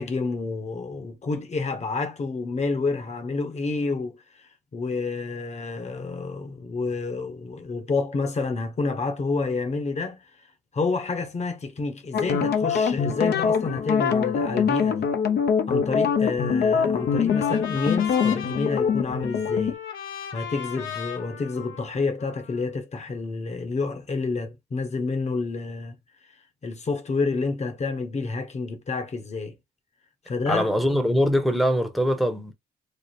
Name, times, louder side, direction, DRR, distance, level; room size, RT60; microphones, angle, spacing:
voice 1, 0.0-10.3 10.7-15.1 15.7-19.8 20.3-26.0 26.6-29.6 30.2-30.6, left 3 dB, 35° left, 1.0 m, -29 dB
sound 1, 12.1-19.7, left 6 dB, 55° left, 0.7 m, -23 dB
Trumpet, 16.5-22.7, left 8 dB, 80° left, 1.1 m, -38 dB
voice 2, 30.5-32.5, equal, ahead, 0.9 m, -22 dB
3.4 x 2.0 x 4.2 m
cardioid pair, 90°, 20 cm